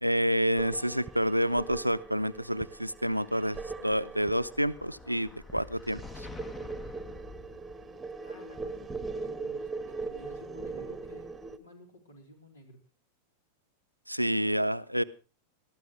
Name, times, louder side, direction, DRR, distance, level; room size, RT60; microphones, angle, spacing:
voice 1, 0.0-6.3 14.1-15.0, equal, 90° right, 0.7 m, -28 dB
sound 1, 0.6-11.6, right 4 dB, 10° right, 1.3 m, -40 dB
Explosion, 3.6-8.2, left 4 dB, 20° left, 1.1 m, -48 dB
voice 2, 8.2-12.8, equal, 70° left, 5.0 m, -53 dB
20.5 x 14.0 x 3.2 m
figure-of-eight pair, 90°, 0 cm